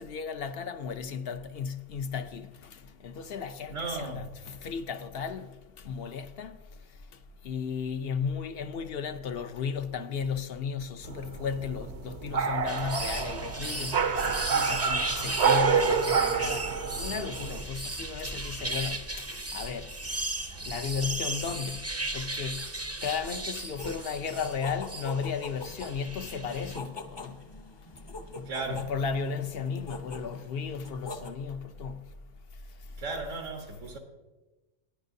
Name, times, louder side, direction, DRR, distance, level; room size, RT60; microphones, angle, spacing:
voice 1, 0.0-6.6 7.4-16.7 17.0-19.1 19.5-19.9 20.7-21.9 22.1-22.7 23.0-27.4 28.3-32.1, left 6 dB, 60° left, 0.9 m, -35 dB
voice 2, 3.7-4.3 20.0-20.2 20.5-21.3 28.5-28.9 33.0-34.0, right 3 dB, 90° right, 1.6 m, -37 dB
sound 1, 11.0-17.6, right 6 dB, 70° right, 1.0 m, -28 dB
sound 2, 12.7-26.8, right 2 dB, 15° right, 0.6 m, -36 dB
sound 3, 23.8-31.3, left 2 dB, 25° left, 0.7 m, -44 dB
17.0 x 10.0 x 2.7 m
omnidirectional pair, 1.2 m